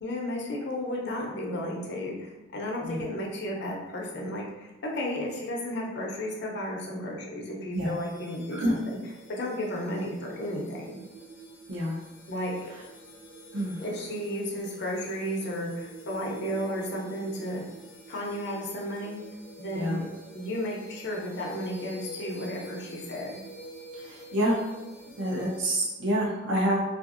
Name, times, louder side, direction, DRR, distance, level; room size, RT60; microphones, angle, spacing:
voice 1, 0.0-9.0 9.3-11.0 12.3-12.6 13.8-17.6 18.1-19.2 19.6-20.1 20.3-23.4, equal, 60° left, -2 dB, 0.6 m, -33 dB
sound 1, 7.7-25.6, right 1 dB, 10° left, 0.5 m, -47 dB
voice 2, 13.5-13.8 19.7-20.0 23.9-24.6 25.2-26.8, equal, 75° right, -3 dB, 0.7 m, -27 dB
2.7 x 2.5 x 2.5 m, 1.0 s
head